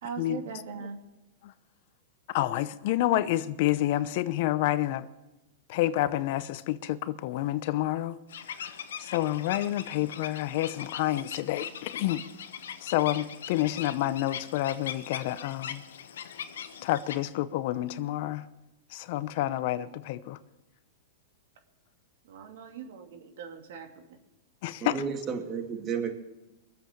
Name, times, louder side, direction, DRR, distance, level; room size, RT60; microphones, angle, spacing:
voice 1, 0.0-1.0 16.6-16.7 22.2-24.0, right 6 dB, 70° right, 2.7 m, -41 dB
voice 2, 2.3-5.1 5.7-8.2 9.0-12.2 12.8-15.8 16.8-18.4 18.9-20.4 24.6-25.0, left 14 dB, 55° left, 0.7 m, -29 dB
sound 1, 8.3-17.2, left 8 dB, 80° left, 1.2 m, -40 dB
voice 3, 24.8-26.1, right 6 dB, 30° right, 2.4 m, -32 dB
23.0 x 7.9 x 7.0 m
hypercardioid pair, 130°, 0 cm